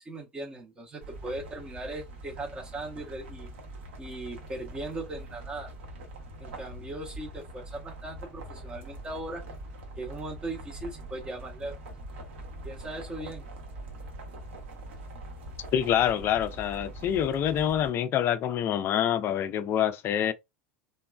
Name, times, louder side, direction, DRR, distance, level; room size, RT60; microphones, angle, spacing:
voice 1, 0.0-3.5 4.0-5.7 6.4-9.4 10.0-11.8 12.6-13.4, right 2 dB, 15° right, 0.7 m, -38 dB
sound 1, 1.0-17.9, right 1 dB, 60° right, 0.8 m, -43 dB
voice 2, 15.7-20.3, left 10 dB, 35° left, 0.4 m, -26 dB
2.9 x 2.1 x 2.2 m
figure-of-eight pair, 80°, 7 cm